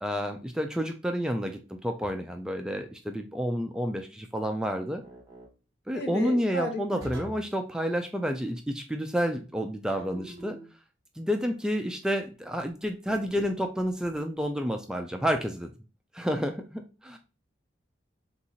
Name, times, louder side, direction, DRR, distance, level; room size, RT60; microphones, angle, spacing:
voice 1, 0.0-5.0 5.9-10.6 11.2-15.7 16.1-17.2, equal, 5° right, 4 dB, 0.3 m, -30 dB
sound 1, 2.0-2.5 5.0-5.5 7.0-7.5 10.0-10.7, right 1 dB, 20° right, 1.0 m, -44 dB
voice 2, 5.9-6.8, left 2 dB, 65° left, 4 dB, 1.0 m, -33 dB
3.6 x 2.9 x 4.0 m, 0.33 s
head